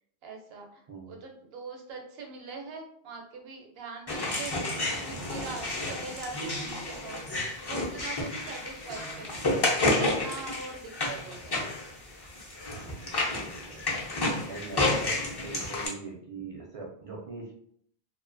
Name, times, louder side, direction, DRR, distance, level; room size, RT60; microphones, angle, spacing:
voice 1, 0.2-7.2 7.7-9.5 9.9-11.7, right 4 dB, 75° right, 2 dB, 0.8 m, -42 dB
sound 1, 4.1-15.9, left 2 dB, 35° left, 0.4 m, -31 dB
voice 2, 12.8-13.8 14.5-17.5, right 4 dB, 50° right, -1 dB, 0.4 m, -42 dB
2.4 x 2.1 x 2.5 m, 0.65 s
omnidirectional pair, 1.1 m